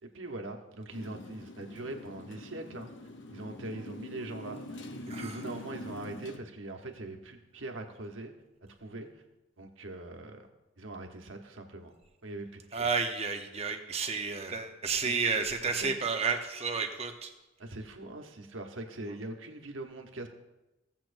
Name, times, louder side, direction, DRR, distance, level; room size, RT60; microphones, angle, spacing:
voice 1, 0.0-2.9 3.3-8.3 8.8-9.2 9.6-10.5 10.8-11.9 12.2-12.9 15.0-15.3 15.7-15.9 17.6-20.3, right 2 dB, 75° right, 4 dB, 1.1 m, -42 dB
Motorcycle, 0.9-6.4, left 2 dB, 65° left, 0.8 m, -44 dB
voice 2, 12.7-17.3, right 5 dB, 30° right, 4 dB, 0.9 m, -31 dB
17.0 x 7.5 x 2.6 m, 1.0 s
head